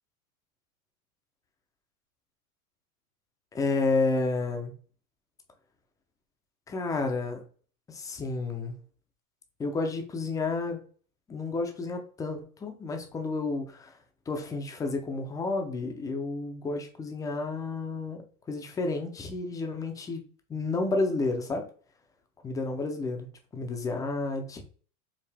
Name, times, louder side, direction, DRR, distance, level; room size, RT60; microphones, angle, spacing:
voice 1, 3.5-4.7 6.7-7.4 7.9-8.8 9.6-10.8 11.3-13.9 14.3-18.2 18.5-20.2 20.5-21.7 22.4-23.3 23.5-24.7, left 3 dB, 10° left, 0.4 m, -31 dB
4.7 x 2.6 x 3.3 m
supercardioid pair, 130°, 43 cm